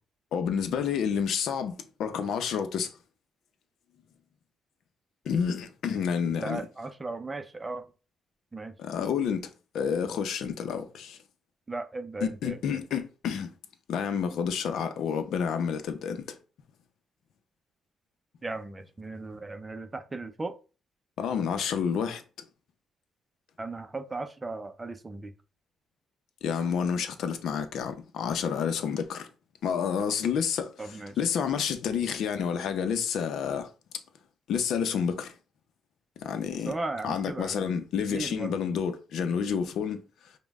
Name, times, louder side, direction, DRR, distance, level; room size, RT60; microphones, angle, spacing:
voice 1, 0.3-2.9 5.2-6.6 8.8-9.5 9.7-11.2 12.2-13.5 13.9-16.4 21.2-22.2 26.4-29.3 29.6-30.7 31.2-33.7 34.5-35.3 36.2-36.7 37.0-40.0, left 7 dB, 75° left, 0.6 m, -29 dB
voice 2, 6.4-7.9 8.5-8.7 11.7-12.6 18.4-20.6 23.6-25.3 30.8-31.2 36.6-37.6 38.0-38.6, right 3 dB, 20° right, 0.5 m, -36 dB
5.1 x 2.2 x 3.5 m
cardioid pair, 90°, 0 cm